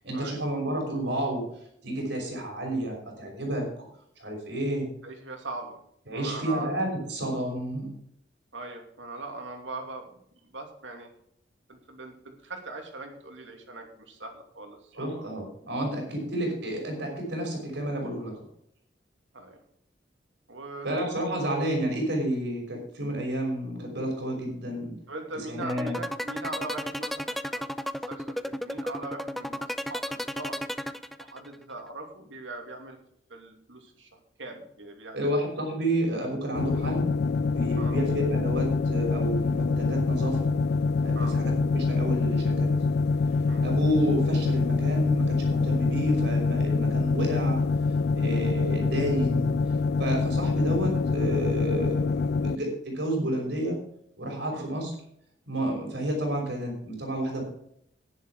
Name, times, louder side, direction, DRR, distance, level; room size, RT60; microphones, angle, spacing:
voice 1, 0.0-1.5 1.8-3.7 4.2-4.9 6.1-7.9 15.0-18.4 20.8-24.9 25.5-26.0 35.1-37.1 37.5-40.5 41.0-42.7 43.6-47.6 48.1-49.5 50.0-53.8 54.2-55.0 55.5-57.4, right 1 dB, 65° right, 1 dB, 5.6 m, -30 dB
voice 2, 5.0-5.8 6.1-6.7 8.5-10.2 10.5-11.1 11.7-15.2 19.3-19.6 20.5-20.9 25.1-30.6 31.2-33.0 33.3-35.4 37.8-38.0 41.1-41.4 43.5-43.7 54.5-54.7, right 2 dB, 90° right, 3 dB, 2.6 m, -40 dB
sound 1, 25.6-31.6, equal, ahead, 0.5 m, -33 dB
sound 2, 36.6-52.6, left 4 dB, 60° left, 0.4 m, -25 dB
11.0 x 10.5 x 4.8 m, 0.70 s
head